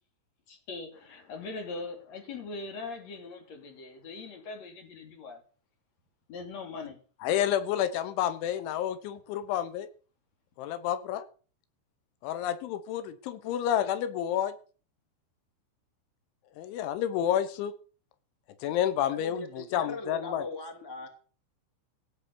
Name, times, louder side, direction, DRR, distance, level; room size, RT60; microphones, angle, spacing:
voice 1, 0.5-5.4 6.3-7.0, left 3 dB, 40° left, 3.4 m, -41 dB
voice 2, 7.2-9.9 10.6-11.3 12.2-14.5 16.6-17.7 18.6-20.5, left 10 dB, 80° left, 3.4 m, -29 dB
voice 3, 19.1-21.1, left 2 dB, 10° left, 1.0 m, -40 dB
16.5 x 7.4 x 7.0 m
omnidirectional pair, 5.5 m